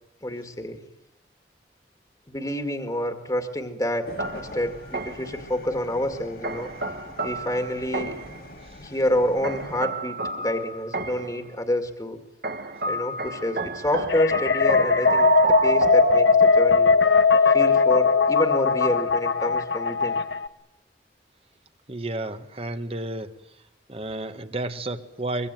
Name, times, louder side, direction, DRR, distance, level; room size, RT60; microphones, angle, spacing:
voice 1, 0.2-0.8 2.3-6.7 7.2-8.2 8.8-12.2 12.8-16.9 17.4-20.2, left 1 dB, 20° left, 6 dB, 2.2 m, -28 dB
sound 1, 4.1-9.8, left 2 dB, 55° left, 2.4 m, -43 dB
sound 2, 4.2-5.4 6.4-8.4 9.4-11.4 12.4-16.7, right 3 dB, 55° right, 1.6 m, -29 dB
sound 3, 14.1-20.5, left 5 dB, 85° left, 1.1 m, -19 dB
voice 2, 21.9-23.6 23.9-25.5, right 2 dB, 35° right, 9 dB, 1.5 m, -32 dB
24.5 x 23.5 x 9.3 m, 0.85 s
head